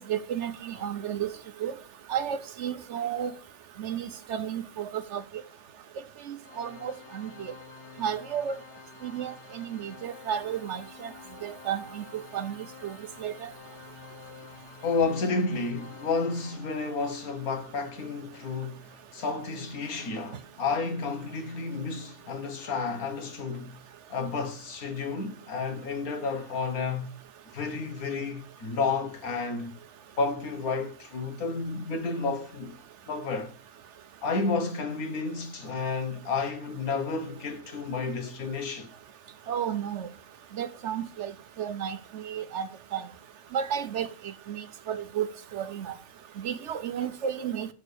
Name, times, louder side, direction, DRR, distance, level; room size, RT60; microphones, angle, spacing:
voice 1, 0.1-1.3 1.6-1.7 2.1-3.3 3.8-5.2 6.3-7.5 8.0-8.6 9.0-11.1 11.4-12.6 12.8-12.9 13.2-13.5 39.5-40.1 40.6-41.3 41.6-42.7 42.9-43.0 43.5-44.1 44.5-46.0 46.4-47.7, right 9 dB, 65° right, 0.8 m, -32 dB
Organ, 6.4-17.2, left 6 dB, 60° left, 1.0 m, -49 dB
voice 2, 14.8-23.8 24.1-27.1 27.5-29.7 30.2-32.8 33.1-33.5 34.2-38.9, left 4 dB, 80° left, 1.8 m, -31 dB
6.5 x 5.3 x 6.7 m
omnidirectional pair, 1.5 m